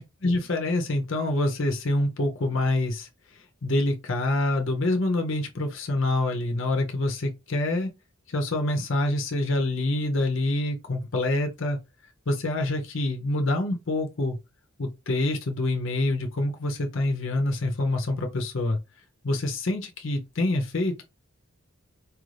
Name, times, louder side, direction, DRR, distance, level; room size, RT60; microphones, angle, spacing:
voice 1, 0.2-7.9 8.3-11.8 12.3-14.4 14.8-18.8 19.2-21.0, left 2 dB, 60° left, 0.7 m, -26 dB
4.7 x 2.5 x 3.2 m
head